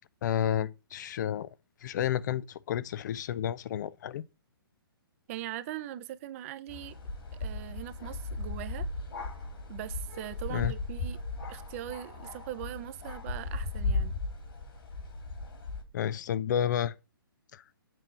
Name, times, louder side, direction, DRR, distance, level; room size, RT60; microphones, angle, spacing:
voice 1, 0.2-1.5 1.8-4.2 10.5-10.7 15.9-16.9 17.5-17.6, left 10 dB, 50° left, 0.4 m, -31 dB
voice 2, 5.3-6.9 7.4-8.9 9.7-11.2 11.5-14.1, right 13 dB, 35° right, 0.6 m, -40 dB
sound 1, 6.7-15.8, left 3 dB, 65° left, 2.9 m, -36 dB
7.6 x 3.1 x 5.7 m
hypercardioid pair, 130°, 13 cm